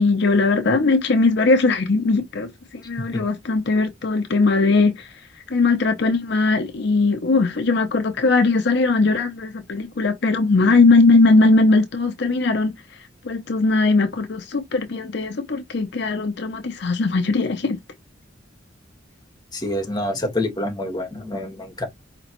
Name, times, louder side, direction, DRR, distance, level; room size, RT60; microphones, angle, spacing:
voice 1, 0.0-5.1 5.5-12.7 13.2-17.8, left 3 dB, 65° left, 0.6 m, -19 dB
voice 2, 19.5-21.9, left 1 dB, 20° left, 1.4 m, -27 dB
5.1 x 2.9 x 2.9 m
head